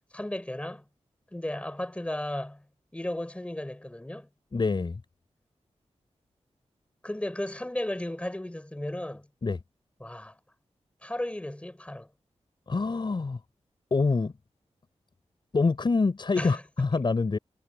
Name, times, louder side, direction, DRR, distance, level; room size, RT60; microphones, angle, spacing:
voice 1, 0.1-0.8 1.3-2.6 2.9-4.3 7.0-9.3 10.0-10.4 11.0-12.1 16.4-16.6, left 1 dB, 10° left, 6.9 m, -34 dB
voice 2, 4.5-5.0 9.4-9.6 12.7-13.4 13.9-14.3 15.5-17.4, left 4 dB, 45° left, 4.9 m, -26 dB
wide cardioid pair, 140°, 12 cm